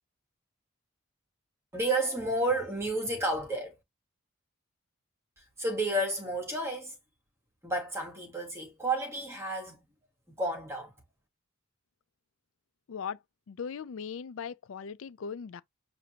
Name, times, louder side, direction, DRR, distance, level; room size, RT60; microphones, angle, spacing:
voice 1, 1.7-3.8 5.4-7.0 7.6-9.8 10.3-10.9, right 1 dB, 10° right, 1.2 m, -31 dB
voice 2, 12.9-13.2 13.5-15.6, left 6 dB, 65° left, 0.4 m, -39 dB
6.7 x 2.6 x 2.8 m
head